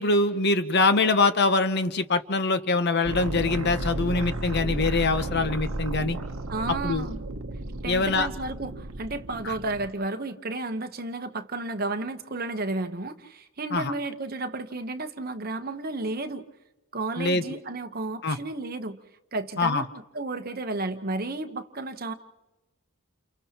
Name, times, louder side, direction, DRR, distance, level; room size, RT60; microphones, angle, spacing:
voice 1, 0.0-6.2 6.8-7.1 7.9-8.3 9.5-9.6 13.7-13.9 17.2-17.4 18.2-18.4 19.6-19.8, left 3 dB, 50° left, 10 dB, 0.9 m, -24 dB
sound 1, 3.0-9.9, right 1 dB, 70° right, 1.0 m, -33 dB
voice 2, 6.5-7.2 7.8-16.4 16.9-19.0 19.3-19.9 20.1-22.1, right 2 dB, 45° right, 8 dB, 1.0 m, -32 dB
30.0 x 29.5 x 3.0 m, 1.0 s
head